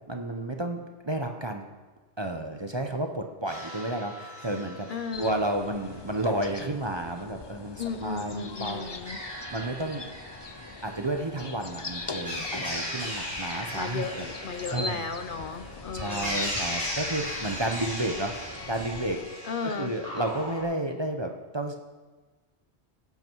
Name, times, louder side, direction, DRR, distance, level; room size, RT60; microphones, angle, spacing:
voice 1, 0.1-1.7 2.2-4.9 5.2-8.9 9.5-10.0 10.8-14.0 14.7-15.0 15.9-18.4 18.7-19.2 19.6-21.8, right 1 dB, 25° right, 4 dB, 0.8 m, -31 dB
sound 1, 3.5-5.4 8.6-20.6, left 1 dB, 15° left, 3.6 m, -37 dB
voice 2, 4.9-5.4 7.8-9.2 13.7-16.5 19.4-19.9, left 5 dB, 55° left, 8 dB, 0.8 m, -35 dB
sound 2, 5.1-19.3, left 3 dB, 35° left, 0.5 m, -42 dB
17.5 x 8.2 x 4.6 m, 1.3 s
omnidirectional pair, 1.1 m